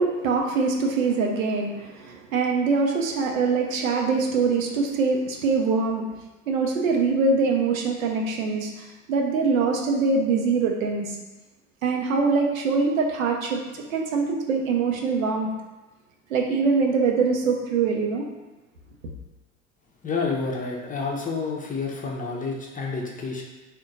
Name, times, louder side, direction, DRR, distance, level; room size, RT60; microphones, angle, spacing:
voice 1, 0.0-6.0 6.5-11.2 11.8-15.5 16.3-18.3, right 4 dB, 75° right, 1 dB, 0.7 m, -23 dB
voice 2, 20.0-23.4, left 4 dB, 20° left, -1 dB, 0.6 m, -29 dB
3.5 x 2.2 x 3.9 m, 1.2 s
figure-of-eight pair, 65°, 41 cm